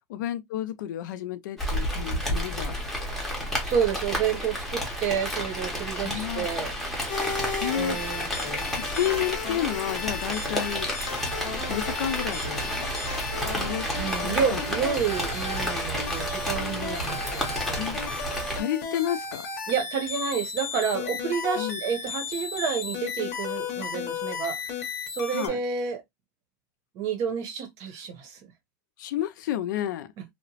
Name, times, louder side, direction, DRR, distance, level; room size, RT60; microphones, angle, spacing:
voice 1, 0.1-2.8 6.0-6.5 7.6-8.4 8.7-10.9 11.6-12.9 13.4-14.6 17.8-18.0 18.5-19.5 21.6-21.8 25.3-25.6 29.0-30.1, left 11 dB, 90° left, 0.4 m, -31 dB
Rain, 1.6-18.6, equal, ahead, 0.6 m, -31 dB
voice 2, 3.6-6.7 7.7-8.3 8.6-8.9 13.9-17.9 19.7-24.6 25.1-26.0 26.9-28.4, right 7 dB, 35° right, 0.7 m, -30 dB
sound 1, 7.1-25.5, left 5 dB, 40° left, 0.8 m, -35 dB
2.9 x 2.0 x 2.7 m
supercardioid pair, 175°, 10 cm